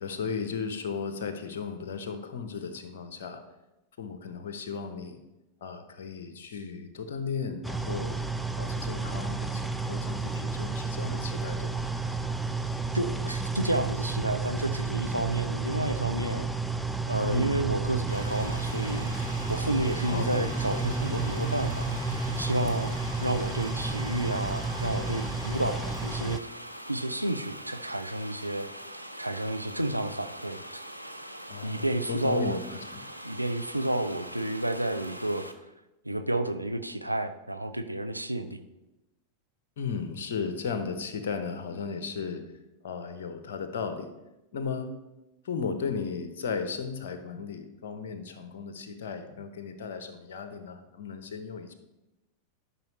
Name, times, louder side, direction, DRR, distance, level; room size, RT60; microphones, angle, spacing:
voice 1, 0.0-3.4 4.0-5.2 5.6-8.2 8.6-11.9 17.2-17.6 20.1-20.3 31.5-33.0 39.8-42.4 42.8-44.1 44.5-44.9 45.4-51.7, left 5 dB, 60° left, 8 dB, 0.8 m, -35 dB
sound 1, 7.6-26.4, right 3 dB, ahead, 0.4 m, -31 dB
voice 2, 12.9-16.5 17.1-19.1 19.5-21.9 22.4-23.0 23.2-26.5 26.9-28.7 29.2-30.8 31.6-32.6 33.2-35.5 36.1-38.6, right 1 dB, 85° right, 8 dB, 0.5 m, -30 dB
sound 2, 18.1-35.5, right 1 dB, 90° left, 0.6 m, -43 dB
12.0 x 5.5 x 3.1 m, 0.97 s
figure-of-eight pair, 90°, 0 cm